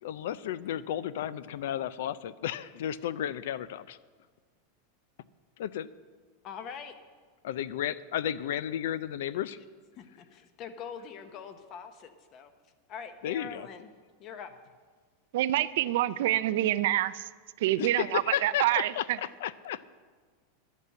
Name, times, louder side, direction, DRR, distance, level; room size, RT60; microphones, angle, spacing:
voice 1, 0.0-4.0 5.6-5.9 7.4-9.6 13.2-13.7 17.8-19.8, left 10 dB, 65° left, 17 dB, 0.4 m, -33 dB
voice 2, 6.4-6.9 10.0-12.5 12.9-13.9 14.2-14.5, left 7 dB, 30° left, 9 dB, 0.8 m, -43 dB
voice 3, 15.3-17.3 17.6-18.9, right 14 dB, 60° right, 15 dB, 0.4 m, -26 dB
11.0 x 8.2 x 7.6 m, 1.5 s
supercardioid pair, 175°, 0 cm